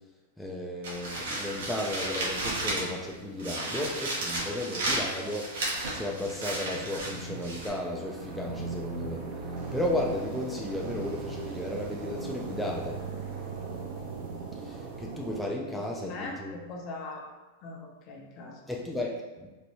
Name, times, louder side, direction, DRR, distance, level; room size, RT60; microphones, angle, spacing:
voice 1, 0.4-5.5 5.9-9.2 9.7-13.0 14.6-16.6 18.7-19.5, left 1 dB, ahead, -3 dB, 0.4 m, -34 dB
sound 1, 0.8-3.1 3.4-7.7, right 1 dB, 80° right, 1.0 m, -33 dB
sound 2, 6.2-15.4, right 4 dB, 55° right, 0.7 m, -38 dB
voice 2, 15.8-17.3 17.6-18.6, left 2 dB, 45° left, 1 dB, 0.6 m, -41 dB
4.1 x 2.2 x 2.8 m, 1.2 s
hypercardioid pair, 125°, 0 cm